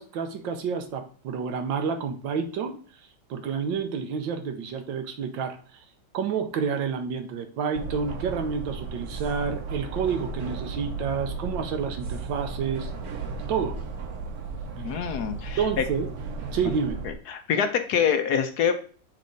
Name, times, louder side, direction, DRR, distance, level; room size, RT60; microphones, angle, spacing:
voice 1, 0.0-2.8 3.3-5.8 6.1-12.9 13.5-13.8 15.6-16.1 16.5-17.0, right 6 dB, 85° right, 1.6 m, -29 dB
sound 1, 7.7-17.1, right 4 dB, 60° right, 1.3 m, -35 dB
voice 2, 14.8-15.8 17.3-18.7, left 7 dB, 65° left, 1.1 m, -25 dB
7.4 x 3.6 x 3.9 m
omnidirectional pair, 2.0 m